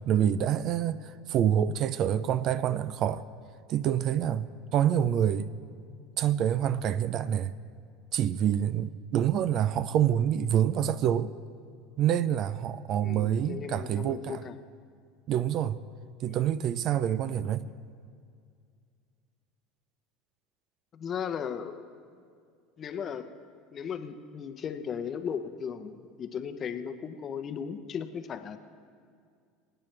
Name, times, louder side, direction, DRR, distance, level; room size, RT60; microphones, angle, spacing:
voice 1, 0.1-3.2 3.7-5.5 6.2-7.5 8.1-11.3 12.0-14.4 15.3-15.8 16.2-17.7, right 10 dB, 50° right, 0.4 m, -27 dB
voice 2, 13.0-14.6 16.3-16.4 20.9-21.9 22.8-23.3 23.7-28.6, left 7 dB, 35° left, 0.8 m, -36 dB
25.5 x 8.9 x 3.3 m
supercardioid pair, 125°, 0 cm